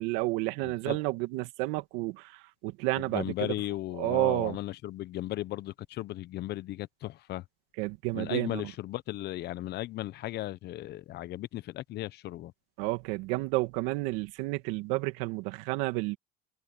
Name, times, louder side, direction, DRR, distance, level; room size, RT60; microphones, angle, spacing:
voice 1, 0.0-3.5 4.0-4.6 7.8-8.6 12.8-16.2, right 22 dB, 75° right, 2.3 m, -31 dB
voice 2, 0.6-1.0 3.0-7.4 8.1-12.5, left 15 dB, 55° left, 1.1 m, -36 dB
supercardioid pair, 95°, 20 cm